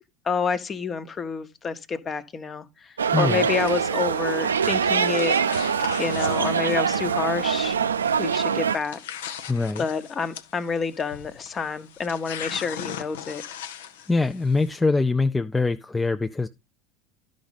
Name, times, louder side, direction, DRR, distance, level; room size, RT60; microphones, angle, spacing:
voice 1, 0.2-5.4 6.0-7.8 8.2-9.0 9.8-13.4, left 5 dB, 30° left, 1.1 m, -28 dB
sound 1, 3.0-8.8, right 7 dB, 90° right, 0.4 m, -24 dB
voice 2, 3.1-3.5 9.5-9.8 14.1-16.5, left 3 dB, 15° left, 0.5 m, -23 dB
sound 2, 3.5-14.8, left 9 dB, 75° left, 0.8 m, -40 dB
11.5 x 5.1 x 4.1 m
hypercardioid pair, 75°, 0 cm